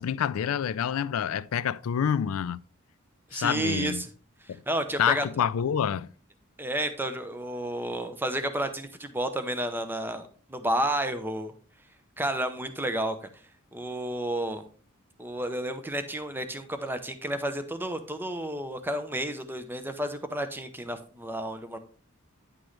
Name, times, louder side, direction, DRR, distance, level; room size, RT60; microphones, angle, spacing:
voice 1, 0.0-2.6 3.3-4.0 4.5-4.6 5.0-6.1, left 8 dB, 80° left, 0.4 m, -27 dB
voice 2, 3.3-4.1 4.7-5.2 6.6-10.2 10.5-11.5 12.2-13.2 13.7-14.6 15.2-21.8, right 1 dB, 10° right, 0.7 m, -31 dB
9.8 x 6.1 x 3.2 m
head